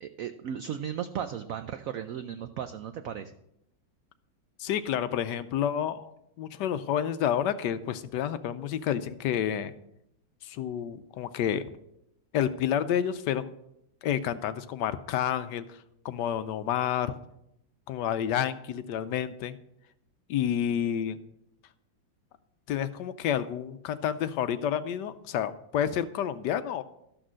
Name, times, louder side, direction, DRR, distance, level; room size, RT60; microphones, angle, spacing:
voice 1, 0.0-3.3, right 9 dB, 90° right, 10 dB, 0.7 m, -36 dB
voice 2, 4.6-9.7 10.4-11.6 12.3-13.5 14.0-15.8 16.0-17.1 17.9-19.6 20.3-21.2 22.7-26.8, left 9 dB, 75° left, 12 dB, 1.1 m, -29 dB
12.5 x 6.2 x 6.2 m, 0.80 s
omnidirectional pair, 2.1 m